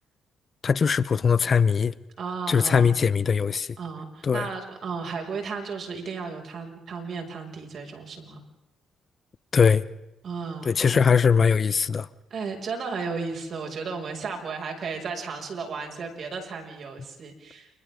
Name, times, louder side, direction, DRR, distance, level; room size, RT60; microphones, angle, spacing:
voice 1, 0.6-1.9 2.5-3.8 4.2-4.5 9.5-9.8 10.6-12.1, left 6 dB, 45° left, 0.8 m, -21 dB
voice 2, 2.2-3.0 3.8-8.4 10.2-11.2 12.3-17.8, right 5 dB, 55° right, 6.4 m, -34 dB
30.0 x 30.0 x 3.8 m
cardioid pair, 90°, 0 cm